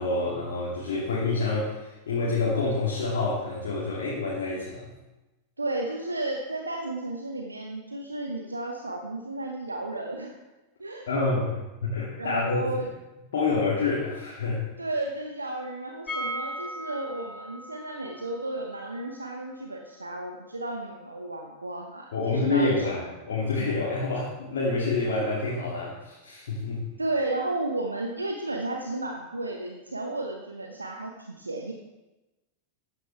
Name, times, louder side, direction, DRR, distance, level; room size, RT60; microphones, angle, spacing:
voice 1, 0.0-4.9 11.1-12.6 13.3-14.6 22.1-26.9, left 3 dB, 60° left, -6 dB, 2.4 m, -27 dB
voice 2, 5.6-10.4 10.8-11.1 12.2-12.9 14.8-22.9 27.0-31.7, right 2 dB, 80° right, 2 dB, 0.9 m, -33 dB
sound 1, 16.1-21.8 22.1-22.2 22.5-22.6, equal, 15° left, 1.5 m, -39 dB
13.5 x 10.0 x 3.4 m, 1.1 s
figure-of-eight pair, 90°, 0 cm